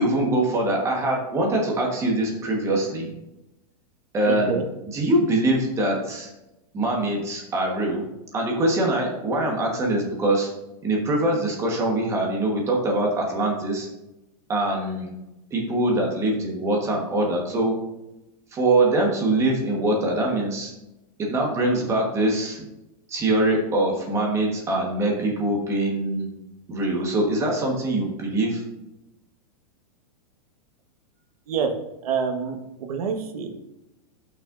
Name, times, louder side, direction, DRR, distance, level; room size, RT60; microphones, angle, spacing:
voice 1, 0.0-3.1 4.1-4.6 4.9-6.3 6.7-8.1 8.3-10.5 10.8-13.9 14.5-15.1 15.5-17.7 18.5-20.7 21.2-22.6 23.1-26.3 26.7-28.6, right 1 dB, 15° right, 0 dB, 1.3 m, -23 dB
voice 2, 4.2-4.6 31.5-31.7 32.0-33.5, right 6 dB, 70° right, 4 dB, 1.5 m, -27 dB
14.0 x 5.8 x 2.6 m, 0.94 s
supercardioid pair, 170°, 20 cm